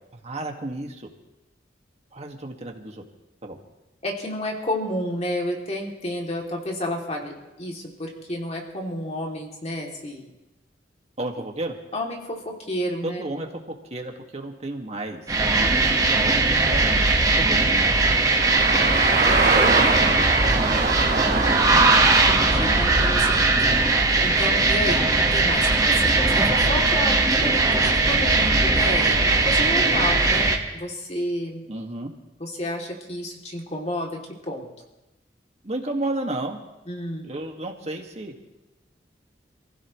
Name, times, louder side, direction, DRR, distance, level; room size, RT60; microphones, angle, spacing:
voice 1, 0.1-1.1 2.1-3.0 3.4-3.6 11.2-11.8 13.0-17.1 17.4-17.7 18.0-18.1 18.8-20.1 20.4-20.9 23.5-23.8 31.7-32.1 35.6-36.6 37.2-38.3, right 2 dB, 40° right, 2 dB, 2.1 m, -33 dB
voice 2, 4.0-7.3 7.6-10.3 11.9-13.3 17.5-17.8 22.3-23.4 24.2-25.0 25.3-31.6 32.4-34.7 36.9-37.3, left 1 dB, 40° left, -1 dB, 3.0 m, -31 dB
sound 1, 15.3-30.6, right 3 dB, 20° right, 1.6 m, -19 dB
sound 2, 18.4-24.1, right 3 dB, 60° right, 2.8 m, -25 dB
28.5 x 15.5 x 3.2 m, 0.98 s
head